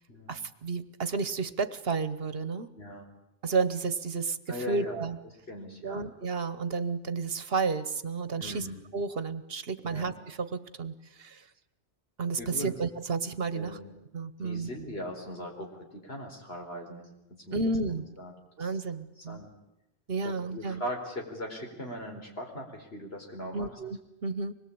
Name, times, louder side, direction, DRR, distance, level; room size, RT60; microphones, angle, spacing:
voice 1, 0.3-2.7 3.4-5.2 5.8-8.7 8.9-11.4 12.2-13.8 14.1-14.7 17.5-18.0 18.6-19.4 20.1-20.8 23.5-24.5, right 4 dB, 65° right, 13 dB, 1.3 m, -32 dB
voice 2, 2.7-3.1 4.5-5.0 5.5-6.0 8.4-8.8 9.8-10.1 12.4-12.8 13.5-13.9 14.4-17.1 17.5-17.6 17.9-18.3 18.6-18.7 19.2-19.5 20.2-23.8, equal, 65° left, 1 dB, 4.7 m, -39 dB
25.0 x 21.0 x 8.7 m, 0.88 s
omnidirectional pair, 1.1 m